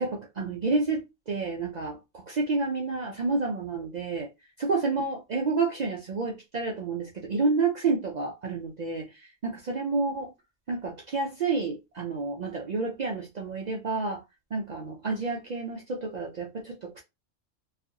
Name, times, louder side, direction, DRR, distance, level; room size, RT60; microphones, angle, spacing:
voice 1, 0.0-4.3 4.6-10.3 10.7-14.2 14.5-17.0, right 3 dB, 80° right, 0.3 m, -29 dB
2.5 x 2.3 x 2.6 m
omnidirectional pair, 1.3 m